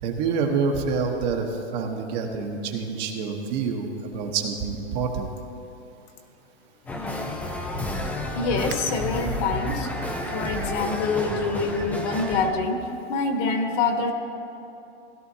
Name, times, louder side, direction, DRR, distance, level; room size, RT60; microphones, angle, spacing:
voice 1, 0.0-1.5 1.7-5.3, right 5 dB, 40° right, 2 dB, 1.2 m, -27 dB
sound 1, 6.9-12.5, left 1 dB, 5° left, 0.4 m, -31 dB
voice 2, 8.3-9.9 10.3-12.8 13.1-14.1, left 4 dB, 40° left, 4 dB, 1.4 m, -25 dB
16.5 x 12.0 x 2.8 m, 2.8 s
hypercardioid pair, 145°, 33 cm